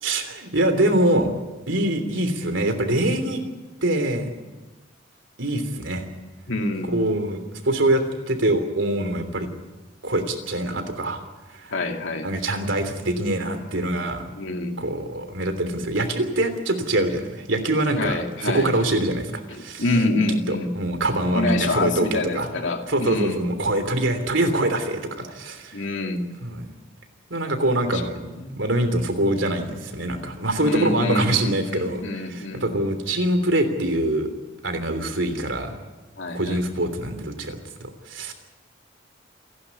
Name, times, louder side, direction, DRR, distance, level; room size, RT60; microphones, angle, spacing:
voice 1, 0.0-1.3 1.7-3.4 3.8-4.3 5.4-6.1 6.9-9.5 10.0-11.2 11.5-11.7 12.2-14.2 14.8-19.8 20.5-22.5 22.9-25.8 26.4-26.7 27.3-34.3 34.6-35.8 36.3-38.3, right 1 dB, 70° right, 7 dB, 3.2 m, -24 dB
voice 2, 6.5-7.0 11.7-12.3 14.3-14.8 18.0-18.7 19.5-20.7 21.3-23.5 25.7-26.3 27.9-28.0 28.4-28.6 30.6-32.7 36.2-36.6, left 2 dB, 70° left, 4 dB, 2.5 m, -26 dB
28.5 x 11.5 x 9.7 m, 1.2 s
head